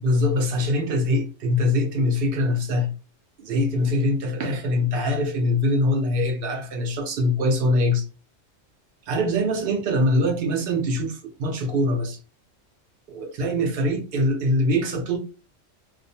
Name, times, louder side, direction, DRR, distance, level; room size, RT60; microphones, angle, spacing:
voice 1, 0.0-2.9 3.4-8.0 9.1-12.2 13.1-15.2, left 1 dB, 60° right, 0.6 m, -23 dB
2.4 x 2.0 x 2.7 m
omnidirectional pair, 1.3 m